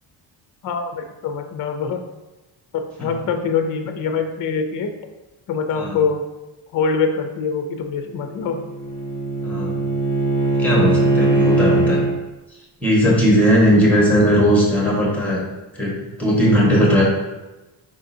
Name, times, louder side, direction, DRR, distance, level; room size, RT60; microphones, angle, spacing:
voice 1, 0.6-2.1 2.7-4.9 5.5-6.2 6.7-8.6 13.1-13.2, left 5 dB, 45° left, 5 dB, 0.4 m, -24 dB
Bowed string instrument, 8.1-12.1, right 2 dB, 40° right, 1.2 m, -20 dB
voice 2, 9.4-9.8 10.6-12.0 12.8-15.4 15.7-15.9 16.2-17.0, equal, 5° left, -4 dB, 1.2 m, -17 dB
5.0 x 3.7 x 2.7 m, 1.1 s
cardioid pair, 150°, 48 cm